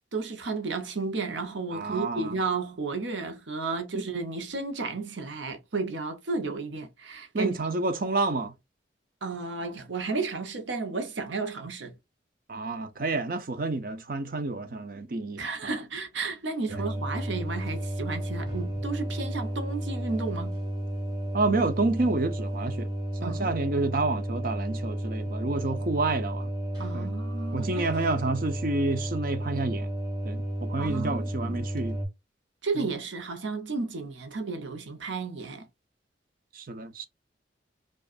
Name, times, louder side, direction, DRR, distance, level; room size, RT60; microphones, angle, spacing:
voice 1, 0.1-7.5 9.2-11.9 15.4-20.6 23.2-23.5 26.8-27.9 30.8-31.6 32.6-35.7, right 4 dB, 80° right, 0.8 m, -33 dB
voice 2, 1.7-2.3 7.3-8.5 12.5-15.7 16.7-16.8 21.3-22.9 23.2-26.5 26.9-27.1 27.5-29.9 30.2-32.0 32.8-32.9 36.5-37.0, right 3 dB, 50° right, 0.6 m, -29 dB
sound 1, 16.7-32.1, right 1 dB, 25° right, 1.4 m, -32 dB
4.9 x 2.4 x 2.4 m
head